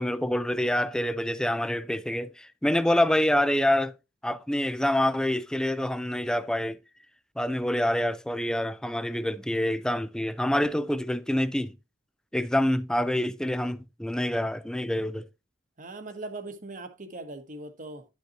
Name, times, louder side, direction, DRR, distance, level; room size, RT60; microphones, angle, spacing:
voice 1, 0.0-3.9 4.2-6.8 7.4-11.8 12.3-15.3, left 1 dB, 5° left, 0.3 m, -26 dB
voice 2, 15.8-18.1, right 2 dB, 40° right, 1.0 m, -40 dB
10.5 x 5.3 x 2.9 m
head